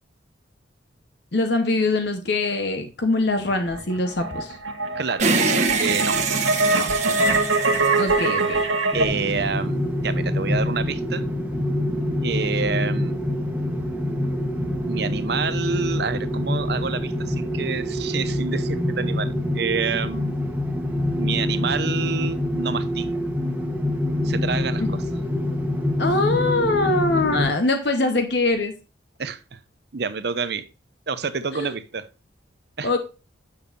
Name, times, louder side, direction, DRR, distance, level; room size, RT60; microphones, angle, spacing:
voice 1, 1.3-4.6 8.0-8.6 26.0-28.7 31.5-31.7 32.8-33.0, left 2 dB, 60° left, 0.9 m, -23 dB
sound 1, 3.5-9.1, right 3 dB, 85° right, 1.4 m, -23 dB
voice 2, 5.0-6.2 6.7-6.9 8.9-11.3 12.2-13.2 14.9-20.4 21.2-23.1 24.2-25.0 29.2-29.6 29.9-30.7 31.1-32.1 32.8-32.9, right 5 dB, 55° right, 0.7 m, -28 dB
sound 2, 5.2-8.7, right 4 dB, 35° right, 1.1 m, -24 dB
sound 3, 8.9-27.5, left 1 dB, 10° right, 1.3 m, -25 dB
8.6 x 7.0 x 2.5 m
head